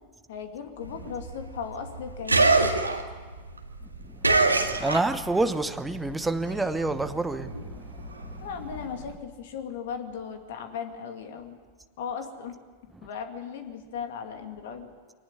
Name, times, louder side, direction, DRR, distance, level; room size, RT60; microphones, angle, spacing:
voice 1, 0.3-2.8 8.4-11.6 12.0-12.5 13.0-14.9, left 7 dB, 55° left, 2.4 m, -37 dB
sound 1, 0.8-5.5 5.8-9.1, right 3 dB, 80° right, 1.8 m, -26 dB
voice 2, 4.0-8.5, right 2 dB, 5° right, 1.0 m, -29 dB
23.0 x 19.0 x 9.9 m
figure-of-eight pair, 90°, 0 cm